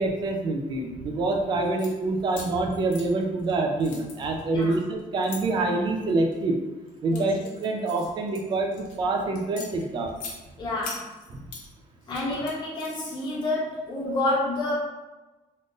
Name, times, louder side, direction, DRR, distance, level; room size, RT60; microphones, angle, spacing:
voice 1, 0.0-6.6 7.0-10.2, right 2 dB, 35° right, 3 dB, 0.4 m, -26 dB
sound 1, 1.6-1.9 2.3-3.5 3.8-5.4 6.1-6.4 6.9-9.0 9.4-10.4 10.8-11.7 12.0-13.2, left 4 dB, 85° left, 0.7 m, -41 dB
voice 2, 10.6-11.1 12.1-14.7, left 2 dB, 35° left, -7 dB, 1.0 m, -28 dB
3.6 x 2.5 x 2.5 m, 1.1 s
cardioid pair, 175°, 13 cm